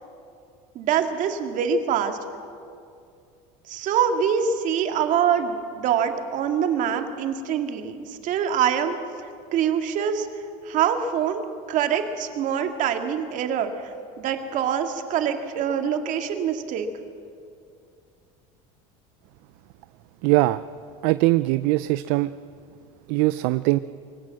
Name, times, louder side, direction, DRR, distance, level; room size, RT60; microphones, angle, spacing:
voice 1, 0.7-2.2 3.7-9.0 9.5-10.3 10.6-16.9, right 8 dB, 55° right, 6 dB, 2.2 m, -25 dB
voice 2, 20.2-20.6 21.0-22.3 23.1-23.8, right 19 dB, 75° right, 14 dB, 0.5 m, -21 dB
23.5 x 16.5 x 7.6 m, 2.4 s
supercardioid pair, 110°, 16 cm